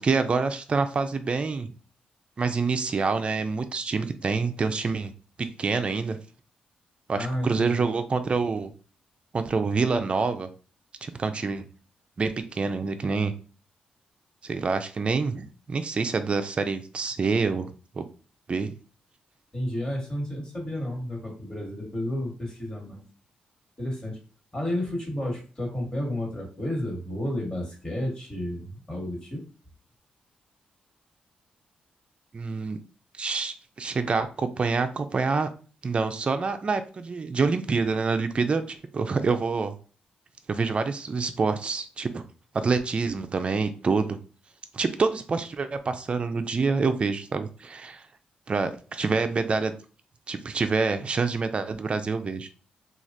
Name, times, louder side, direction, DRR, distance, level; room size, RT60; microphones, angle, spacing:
voice 1, 0.0-1.7 2.4-5.1 5.4-6.2 7.1-8.7 9.3-10.5 11.0-11.7 12.2-13.3 14.4-18.0 18.5-18.7 32.3-32.8 33.2-35.5 35.8-39.7 40.5-42.2 42.5-44.2 44.7-48.0 48.5-49.8 50.3-52.5, right 4 dB, 40° right, 8 dB, 0.4 m, -27 dB
voice 2, 7.1-7.9 19.5-23.0 23.8-24.2 24.5-29.4, left 1 dB, 25° left, -1 dB, 1.5 m, -31 dB
3.1 x 2.3 x 2.6 m, 0.37 s
cardioid pair, 75°, 3 cm